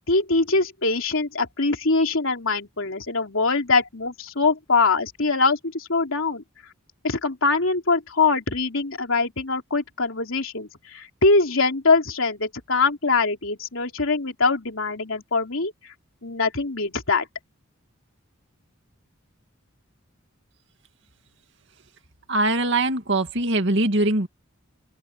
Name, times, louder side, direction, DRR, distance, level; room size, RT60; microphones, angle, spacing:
voice 1, 0.1-6.4 7.0-15.7 16.2-17.3, left 3 dB, 70° left, 3.2 m, -23 dB
voice 2, 22.3-24.3, right 2 dB, 55° right, 2.4 m, -22 dB
open air
head